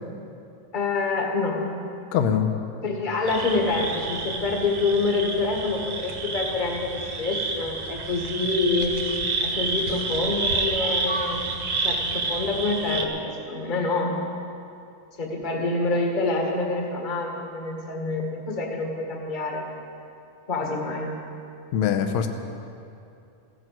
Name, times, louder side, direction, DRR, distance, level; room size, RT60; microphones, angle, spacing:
voice 1, 0.7-1.6 2.8-8.9 9.4-14.1 15.2-19.7 20.5-21.1, left 3 dB, 20° left, 0 dB, 1.2 m, -27 dB
voice 2, 2.1-2.5 21.7-22.3, left 8 dB, 70° left, 5 dB, 1.8 m, -22 dB
sound 1, 3.3-13.0, right 3 dB, 55° right, 2.2 m, -29 dB
15.5 x 10.5 x 7.7 m, 2.6 s
omnidirectional pair, 3.7 m